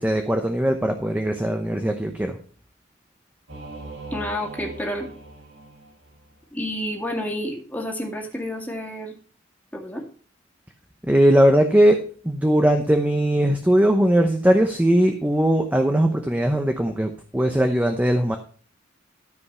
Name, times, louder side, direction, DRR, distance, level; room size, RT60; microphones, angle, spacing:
voice 1, 0.0-2.4 11.0-12.0 12.2-18.4, right 1 dB, 10° right, 5 dB, 0.8 m, -19 dB
Singing / Musical instrument, 3.5-6.4, right 2 dB, 75° right, 6.7 m, -40 dB
voice 2, 4.1-5.1 6.5-9.2 9.7-10.0, left 1 dB, 10° left, 0 dB, 2.0 m, -30 dB
13.0 x 5.3 x 5.6 m, 0.42 s
head